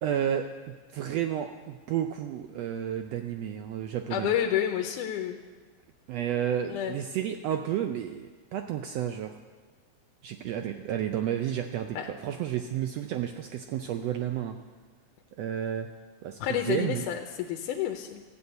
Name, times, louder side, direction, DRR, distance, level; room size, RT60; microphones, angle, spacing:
voice 1, 0.0-4.3 6.1-9.4 10.2-14.6 15.4-15.9 16.2-17.0, right 10 dB, 85° right, 6 dB, 1.4 m, -31 dB
voice 2, 4.1-5.4 6.7-7.0 12.0-12.1 16.4-18.2, left 10 dB, 80° left, 3 dB, 2.2 m, -29 dB
14.0 x 8.5 x 7.8 m, 1.4 s
omnidirectional pair, 3.6 m